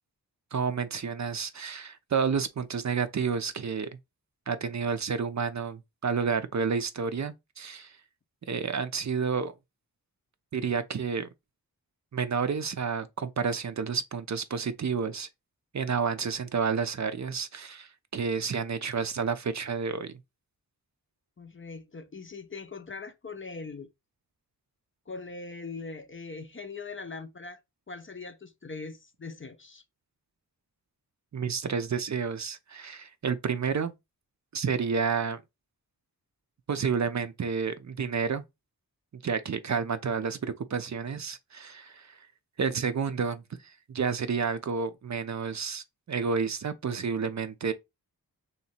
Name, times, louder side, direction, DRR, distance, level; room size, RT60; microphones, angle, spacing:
voice 1, 0.5-3.9 4.5-7.9 8.5-9.5 10.5-11.3 12.1-15.3 15.7-20.1 31.3-33.9 34.5-35.4 36.7-38.4 39.2-42.2 42.6-47.7, right 6 dB, 50° right, 0.5 m, -30 dB
voice 2, 21.4-23.9 25.1-27.6 27.9-29.8, left 4 dB, 35° left, 0.5 m, -41 dB
3.1 x 2.9 x 4.2 m
wide cardioid pair, 75°, 38 cm